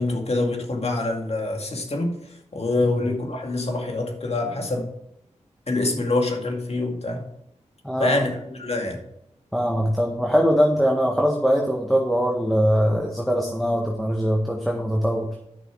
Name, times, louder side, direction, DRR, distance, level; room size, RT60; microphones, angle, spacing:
voice 1, 0.0-2.1 2.5-4.9 5.7-7.2 8.0-9.0, left 2 dB, 55° left, 2 dB, 2.3 m, -25 dB
voice 2, 7.8-8.2 9.5-15.3, equal, ahead, 0 dB, 1.7 m, -22 dB
10.5 x 6.2 x 4.8 m, 0.78 s
cardioid pair, 40°, 13 cm